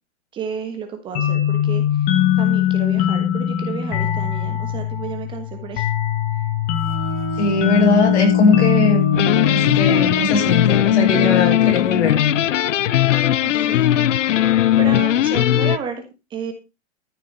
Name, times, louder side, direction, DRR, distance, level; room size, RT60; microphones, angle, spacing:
voice 1, 0.3-5.9 13.4-16.0 16.3-16.5, right 6 dB, 15° right, 6 dB, 1.3 m, -32 dB
sound 1, 1.1-10.5, left 11 dB, 20° left, 1.3 m, -21 dB
sound 2, 6.8-14.2, left 1 dB, 40° right, 3.3 m, -30 dB
voice 2, 7.3-9.0 9.4-12.2, left 3 dB, 65° left, 2 dB, 6.6 m, -19 dB
sound 3, 9.1-15.8, left 12 dB, 85° left, 0.7 m, -18 dB
14.0 x 6.6 x 5.3 m, 0.28 s
hypercardioid pair, 170°, 36 cm